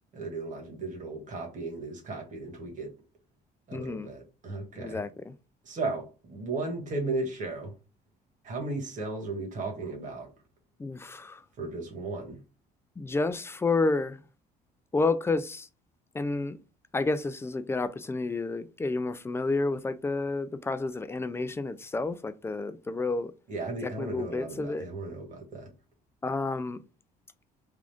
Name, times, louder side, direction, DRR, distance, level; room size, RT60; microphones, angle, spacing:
voice 1, 0.1-3.0 3.7-5.0 5.6-7.7 8.4-10.3 11.6-12.4 23.5-25.7, right 3 dB, 50° right, 1.5 m, -35 dB
voice 2, 3.7-4.1 4.8-5.3 10.8-11.4 13.0-14.2 14.9-15.7 16.1-16.6 16.9-23.3 23.8-24.9 26.2-26.8, left 3 dB, 15° left, 0.3 m, -30 dB
3.7 x 2.4 x 3.4 m
cardioid pair, 110°, 17 cm